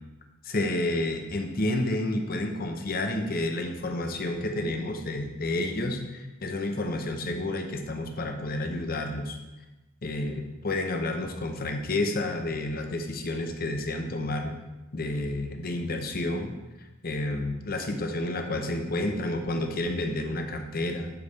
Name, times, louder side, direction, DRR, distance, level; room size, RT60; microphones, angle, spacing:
voice 1, 0.4-9.4 10.0-14.5 14.9-16.6 17.0-21.1, left 2 dB, 45° left, 5 dB, 0.8 m, -30 dB
11.5 x 4.1 x 3.5 m, 1.1 s
head